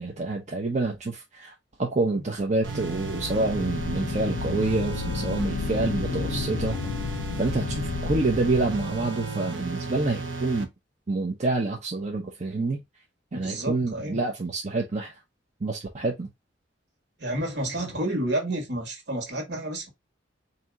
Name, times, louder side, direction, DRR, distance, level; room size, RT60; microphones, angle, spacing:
voice 1, 0.0-1.5 1.8-6.8 7.0-10.7 11.1-12.8 13.3-15.1 15.6-16.3, right 2 dB, 40° right, 0.7 m, -27 dB
sound 1, 2.6-9.5, left 5 dB, 60° left, 0.3 m, -32 dB
sound 2, 2.6-10.6, right 3 dB, 80° right, 0.8 m, -34 dB
voice 2, 13.3-14.2 17.2-19.9, right 1 dB, 60° right, 1.6 m, -30 dB
4.2 x 2.8 x 3.5 m
head